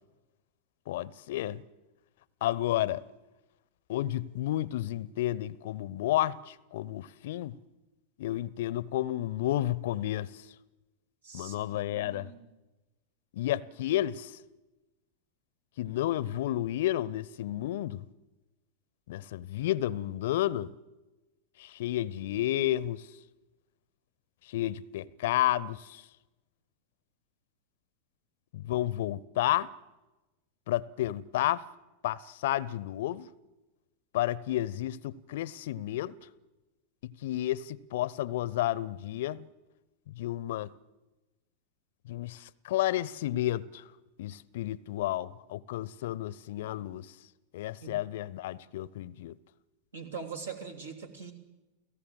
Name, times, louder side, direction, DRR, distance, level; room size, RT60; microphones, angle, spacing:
voice 1, 0.9-1.6 2.4-3.0 3.9-7.6 8.2-10.5 11.3-12.3 13.3-14.4 15.8-18.0 19.1-20.7 21.6-23.1 24.4-26.1 28.5-29.7 30.7-31.7 32.0-33.3 34.1-36.1 37.0-39.5 40.1-40.7 42.1-43.9 44.2-47.1 47.5-49.4, left 14 dB, 55° left, 0.7 m, -31 dB
voice 2, 11.2-11.6 11.9-12.4 47.8-47.9 49.9-51.3, right 6 dB, 70° right, 3.3 m, -42 dB
30.0 x 17.5 x 7.6 m
figure-of-eight pair, 90°, 0 cm